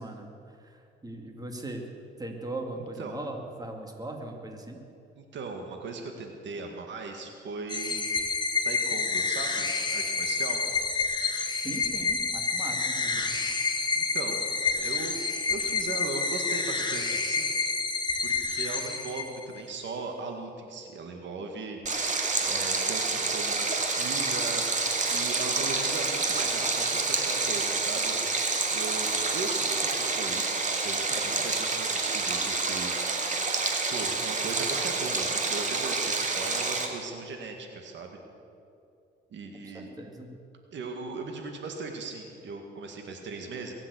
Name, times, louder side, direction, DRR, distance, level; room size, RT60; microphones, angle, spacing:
voice 1, 0.0-1.8 2.2-4.8 11.6-13.4 39.5-40.4, right 2 dB, 20° right, 2 dB, 2.3 m, -39 dB
voice 2, 2.8-3.2 5.2-8.1 8.6-10.6 13.0-13.3 14.0-14.5 14.7-15.2 15.5-17.6 18.2-21.8 22.1-24.7 25.1-28.1 28.7-30.4 30.8-32.9 33.2-33.5 33.9-38.2 39.3-39.9 40.7-43.7, right 3 dB, 70° right, 3 dB, 2.0 m, -38 dB
sound 1, 7.7-19.6, left 4 dB, 20° left, 2.0 m, -29 dB
Stream, 21.9-36.9, right 3 dB, 40° right, 2.3 m, -28 dB
22.5 x 7.6 x 8.3 m, 2.5 s
cardioid pair, 90°, 20 cm